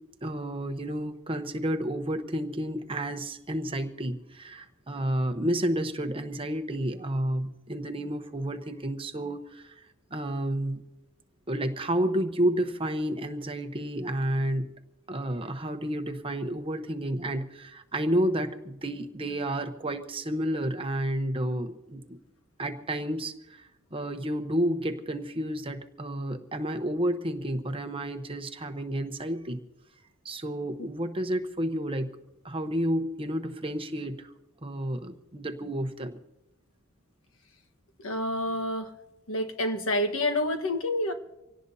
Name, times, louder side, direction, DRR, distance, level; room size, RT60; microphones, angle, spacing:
voice 1, 0.2-9.8 10.1-10.8 11.5-14.7 15.1-22.2 22.6-29.6 30.2-32.1 32.4-34.3 34.6-36.2, right 1 dB, 25° right, 7 dB, 1.0 m, -30 dB
voice 2, 38.0-38.9 39.3-41.1, left 1 dB, 75° left, 7 dB, 1.4 m, -28 dB
25.5 x 17.5 x 2.8 m, 0.93 s
head